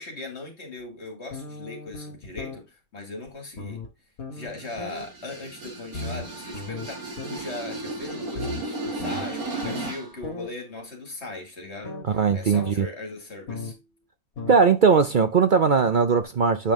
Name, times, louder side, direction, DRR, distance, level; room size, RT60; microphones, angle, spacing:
voice 1, 0.0-3.8 4.3-12.0 12.3-13.7, left 2 dB, 50° left, 2.6 m, -39 dB
sound 1, 1.3-2.6 3.3-3.4 3.6-3.9 4.2-5.1 5.9-6.9 7.2-7.4 8.4-9.9 10.2-10.5 11.8-12.1 12.5-12.7 13.5-13.8 14.4-14.6 15.0-15.1 16.2-16.3, left 3 dB, 75° left, 2.0 m, -36 dB
sound 2, 4.4-10.2, right 3 dB, 80° right, 3.1 m, -35 dB
voice 2, 12.1-12.9 14.5-16.7, right 5 dB, 55° right, 0.5 m, -19 dB
8.4 x 5.3 x 3.6 m
omnidirectional pair, 1.5 m